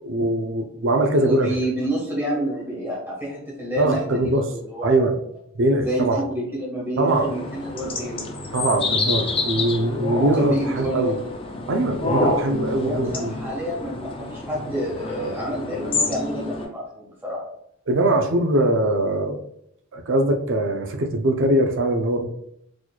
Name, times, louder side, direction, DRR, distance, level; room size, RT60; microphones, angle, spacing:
voice 1, 0.0-1.6 3.8-4.5 4.8-5.2 5.5-6.2 7.0-7.3 8.5-11.2 11.7-13.3 17.9-19.4 19.9-22.2, right 1 dB, 60° right, 4 dB, 0.5 m, -21 dB
voice 2, 1.1-5.0 5.8-8.3 10.4-11.3 12.8-17.4, equal, 10° right, -5 dB, 1.2 m, -28 dB
sound 1, 7.1-16.6, left 2 dB, 25° left, 0.4 m, -28 dB
4.1 x 3.0 x 2.2 m, 0.72 s
head